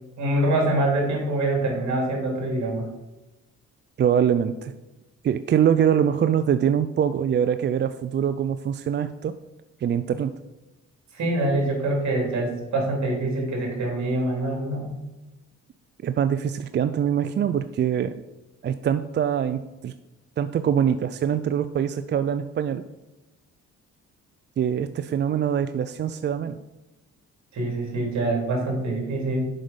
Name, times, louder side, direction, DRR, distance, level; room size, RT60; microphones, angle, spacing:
voice 1, 0.2-2.9 11.1-15.0 27.5-29.5, right 1 dB, 65° right, 0 dB, 3.2 m, -25 dB
voice 2, 4.0-4.7 5.2-9.3 9.8-10.3 16.0-18.1 18.6-19.9 20.4-22.8 24.6-26.6, right 8 dB, 35° right, 11 dB, 0.4 m, -23 dB
7.4 x 5.4 x 5.2 m, 1.0 s
cardioid pair, 90°, 30 cm